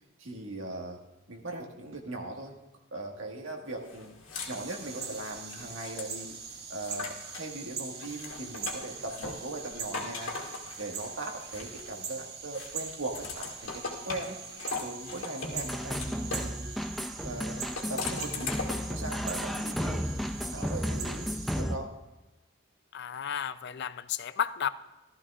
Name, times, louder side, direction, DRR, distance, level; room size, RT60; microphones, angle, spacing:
voice 1, 0.2-1.0 1.3-2.6 2.9-4.1 4.5-6.4 6.7-10.4 10.8-14.4 14.8-16.8 17.2-18.5 18.9-21.3 21.6-21.9, right 2 dB, 85° right, 1 dB, 1.7 m, -39 dB
sound 1, 3.9-7.5 7.9-12.1 12.5-16.5 17.6-19.0, left 4 dB, 80° left, 2.2 m, -40 dB
sound 2, 4.5-21.6, right 6 dB, 55° right, 1.2 m, -42 dB
sound 3, 15.5-21.8, equal, ahead, 0.5 m, -34 dB
voice 2, 22.9-24.7, left 8 dB, 60° left, 14 dB, 0.4 m, -33 dB
15.0 x 13.5 x 2.4 m, 1.1 s
head